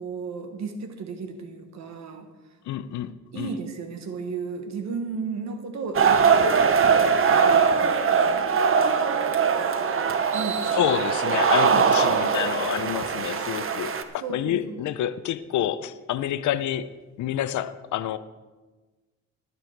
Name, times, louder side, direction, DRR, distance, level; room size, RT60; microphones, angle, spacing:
voice 1, 0.0-2.3 3.3-8.5 10.3-10.8 11.6-11.9 14.2-14.8, right 5 dB, 65° right, 6 dB, 1.4 m, -35 dB
voice 2, 2.7-3.5 10.7-16.9 17.2-18.2, left 11 dB, 75° left, 14 dB, 0.7 m, -28 dB
sound 1, 5.9-14.0, right 6 dB, 45° right, 1.0 m, -21 dB
19.0 x 6.9 x 4.6 m, 1.3 s
cardioid pair, 90°, 30 cm